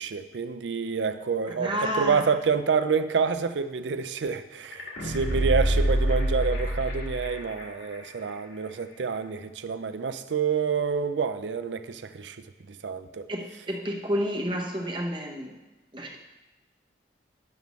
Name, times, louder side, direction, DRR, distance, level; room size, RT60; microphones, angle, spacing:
voice 1, 0.0-13.2, right 5 dB, 80° right, 11 dB, 0.5 m, -28 dB
voice 2, 1.5-2.2 13.3-15.5 15.9-16.2, equal, 25° right, 1 dB, 0.9 m, -30 dB
sound 1, 4.7-7.6 7.9-8.0, right 1 dB, 75° left, 1.8 m, -26 dB
10.5 x 6.8 x 3.1 m, 1.1 s
head